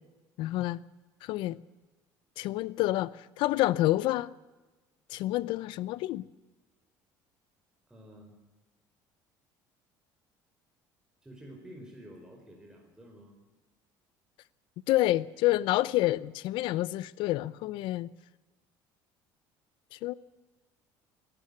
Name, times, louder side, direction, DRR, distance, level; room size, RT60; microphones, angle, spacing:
voice 1, 0.4-0.8 1.2-1.6 2.4-4.3 5.1-6.3 14.9-18.1 19.9-20.1, left 16 dB, 70° left, 0.7 m, -28 dB
voice 2, 7.9-8.3 11.2-13.4, equal, 10° right, 4.9 m, -50 dB
22.5 x 12.5 x 9.8 m
cardioid pair, 120°, 9 cm